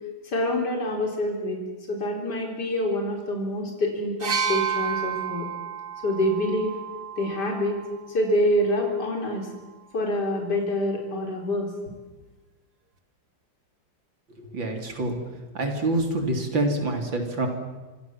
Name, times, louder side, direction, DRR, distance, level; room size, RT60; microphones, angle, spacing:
voice 1, 0.2-1.6 1.9-5.5 6.0-6.7 7.2-7.8 8.1-9.5 9.9-11.7, left 1 dB, 60° left, 1 dB, 4.5 m, -26 dB
sound 1, 4.2-8.0 9.1-9.2, right 7 dB, 55° right, 2.6 m, -31 dB
voice 2, 14.5-15.2 15.5-17.5, right 2 dB, 80° right, 4 dB, 4.1 m, -26 dB
26.0 x 26.0 x 7.4 m, 1.2 s
omnidirectional pair, 2.1 m